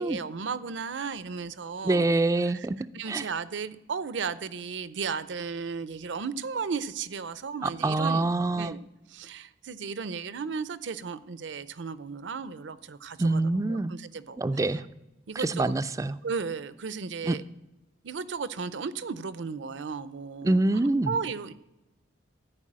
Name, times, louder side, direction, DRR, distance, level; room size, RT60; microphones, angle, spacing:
voice 1, 0.0-2.1 2.4-8.3 8.5-8.8 9.1-13.4 13.7-14.8 15.3-15.8 16.2-17.4 18.0-20.6 21.1-21.5, right 5 dB, 70° right, 15 dB, 0.5 m, -35 dB
voice 2, 1.8-3.3 7.6-8.7 13.2-13.9 14.4-14.8 15.4-16.2 17.3-17.4 20.4-21.1, right 2 dB, 15° right, 13 dB, 0.3 m, -25 dB
14.0 x 4.8 x 7.4 m, 0.99 s
head